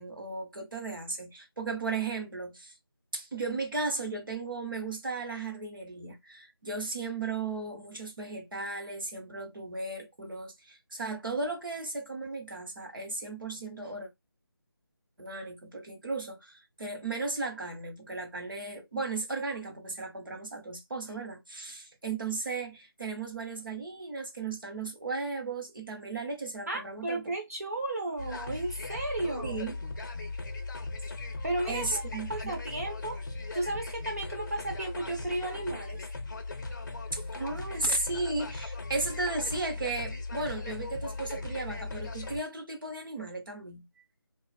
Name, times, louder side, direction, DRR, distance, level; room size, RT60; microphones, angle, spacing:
voice 1, 0.0-2.7 3.1-14.1 15.2-27.2 29.4-29.8 31.7-32.3 37.1-43.8, right 3 dB, 55° right, 1.1 m, -35 dB
voice 2, 26.7-29.6 31.4-32.0 32.3-33.2 33.5-36.1, right 2 dB, 40° right, 0.5 m, -34 dB
sound 1, 28.2-42.4, left 3 dB, 50° left, 0.6 m, -38 dB
2.7 x 2.4 x 2.5 m
figure-of-eight pair, 160°, 13 cm